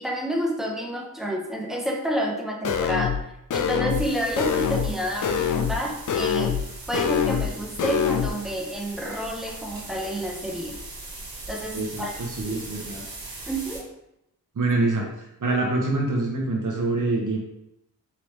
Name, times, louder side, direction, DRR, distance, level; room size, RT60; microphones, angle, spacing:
voice 1, 0.0-3.2 3.5-10.8 11.5-12.1 12.5-12.6 13.5-13.9, equal, ahead, 0 dB, 0.9 m, -29 dB
sound 1, 2.6-3.2 3.5-4.1 4.4-4.9 5.2-5.8 6.1-6.6 6.9-7.5 7.8-8.3, left 8 dB, 55° left, 0.5 m, -24 dB
sound 2, 3.9-13.8, right 2 dB, 70° right, 1.5 m, -40 dB
voice 2, 11.7-13.0 14.6-15.1 15.4-17.4, right 2 dB, 55° right, -1 dB, 0.8 m, -25 dB
4.8 x 3.0 x 3.2 m, 0.82 s
cardioid pair, 50°, 37 cm